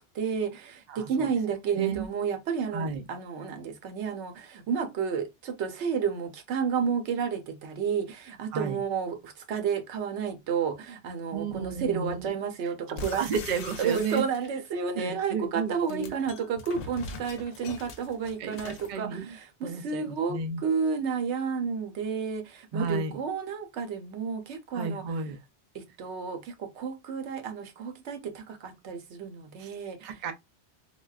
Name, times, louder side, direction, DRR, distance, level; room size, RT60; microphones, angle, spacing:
voice 1, 0.0-13.2 13.8-25.0 25.7-30.1, right 6 dB, 90° right, 1.0 m, -31 dB
voice 2, 0.9-1.4 1.7-2.1 2.7-3.1 8.5-8.8 11.3-12.3 13.1-14.2 14.9-16.2 18.4-20.6 22.7-23.2 24.7-25.4 29.6-29.7 30.0-30.3, right 5 dB, 55° right, 0.6 m, -33 dB
sound 1, 13.0-14.7 15.7-19.0, left 3 dB, 85° left, 0.9 m, -42 dB
3.9 x 2.1 x 2.3 m
omnidirectional pair, 1.1 m